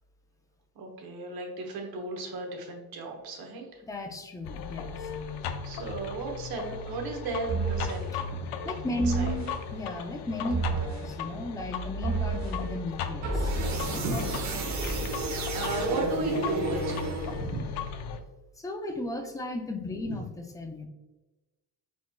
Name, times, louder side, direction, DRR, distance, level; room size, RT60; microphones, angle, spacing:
voice 1, 0.7-3.8 5.6-8.5 8.9-9.3 11.2-11.4 13.7-14.2 14.5-17.7 20.1-20.2, right 3 dB, 60° right, 2 dB, 1.1 m, -36 dB
voice 2, 3.8-5.1 8.6-13.5 18.6-20.9, left 1 dB, 10° left, 4 dB, 0.3 m, -35 dB
sound 1, 4.4-18.2, left 5 dB, 70° left, 0.6 m, -36 dB
sound 2, 7.5-8.0 9.0-9.5 10.5-11.1 12.0-12.6 13.2-17.6, right 3 dB, 45° right, 0.8 m, -31 dB
4.3 x 4.3 x 2.2 m, 1.1 s
cardioid pair, 140°, 42 cm